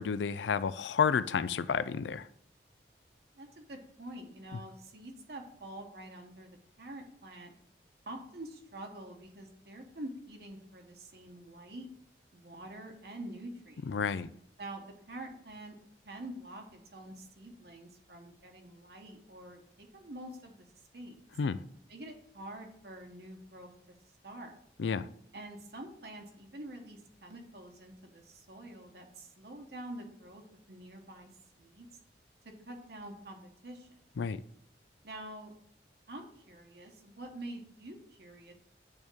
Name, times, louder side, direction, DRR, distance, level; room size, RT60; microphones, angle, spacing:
voice 1, 0.0-2.3 13.9-14.3 21.4-21.6 24.8-25.1 34.2-34.4, left 6 dB, 85° left, 15 dB, 0.4 m, -30 dB
voice 2, 3.4-6.5 6.8-7.5 8.1-11.9 12.3-13.9 14.6-15.8 16.0-20.7 20.9-21.2 21.9-23.7 24.2-24.6 25.3-31.3 31.6-31.9 32.4-34.0 35.0-35.6 36.1-38.5, right 1 dB, 65° right, 2 dB, 1.2 m, -46 dB
8.8 x 3.5 x 6.2 m, 0.66 s
head